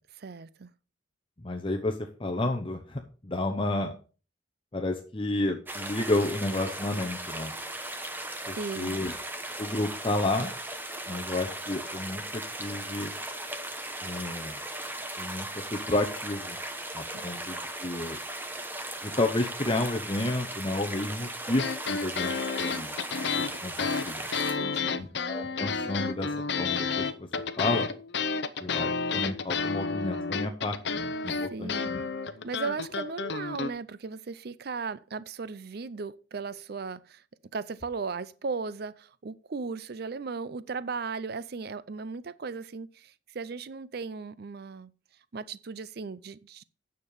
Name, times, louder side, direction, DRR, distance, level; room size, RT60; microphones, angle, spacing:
voice 1, 0.2-0.7 8.5-9.0 17.1-17.3 24.5-25.1 31.5-31.9 32.4-37.2 37.5-44.9 45.3-46.6, right 4 dB, 50° right, 0.5 m, -36 dB
voice 2, 1.4-3.9 4.7-7.5 8.5-9.1 9.6-10.5 11.1-13.1 14.0-14.6 15.2-16.6 16.9-18.2 19.0-22.3 22.6-22.9 23.4-24.3 25.0-27.3 27.6-27.9 28.6-32.0, left 2 dB, 25° left, 0.9 m, -31 dB
sound 1, 5.7-24.5, right 1 dB, 10° right, 1.0 m, -37 dB
sound 2, 21.6-33.7, left 5 dB, 55° left, 0.8 m, -31 dB
9.7 x 6.7 x 5.5 m
head